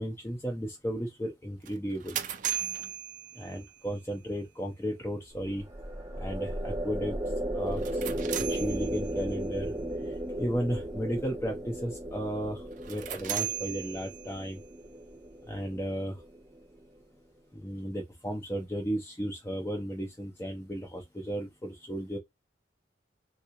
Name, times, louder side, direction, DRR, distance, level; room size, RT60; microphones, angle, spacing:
voice 1, 0.0-2.2 3.4-5.6 6.2-7.2 7.5-8.0 8.3-9.7 10.4-14.6 15.5-16.2 17.5-22.2, equal, 15° left, 0.5 m, -34 dB
sound 1, 1.6-3.9 7.7-9.3 12.7-14.5, right 11 dB, 45° right, 0.4 m, -37 dB
sound 2, 5.3-16.8, right 1 dB, 15° right, 0.9 m, -36 dB
3.6 x 2.3 x 2.8 m
head